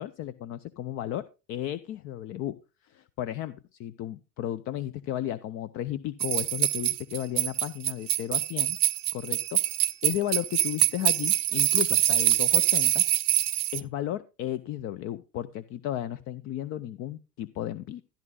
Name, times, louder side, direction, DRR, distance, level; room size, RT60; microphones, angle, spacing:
voice 1, 0.0-2.6 2.8-8.8 9.1-9.7 10.0-13.0 13.7-18.0, left 12 dB, 30° left, 15 dB, 0.5 m, -34 dB
sound 1, 6.2-13.8, right 11 dB, 85° right, 0.7 m, -25 dB
13.0 x 11.5 x 2.3 m, 0.29 s
hypercardioid pair, 90°, 49 cm